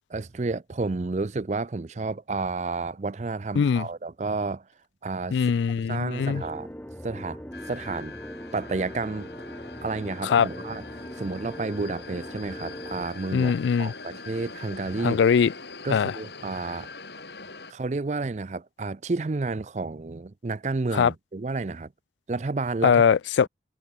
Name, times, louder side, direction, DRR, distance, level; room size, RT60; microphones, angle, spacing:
voice 1, 0.1-4.6 5.0-5.4 5.9-6.7 7.0-7.4 7.7-8.1 8.5-9.3 9.8-10.8 11.2-13.5 13.8-15.2 15.8-16.9 17.7-21.9 22.3-23.0, right 3 dB, 40° right, 0.5 m, -31 dB
voice 2, 5.3-6.4 10.2-10.5 13.3-13.9 15.0-15.5 15.9-16.1 20.9-21.1 22.8-23.5, left 6 dB, 85° left, 0.3 m, -21 dB
sound 1, 6.2-13.1, equal, 10° left, 2.9 m, -40 dB
sound 2, 7.5-17.7, left 3 dB, 70° left, 5.3 m, -43 dB
head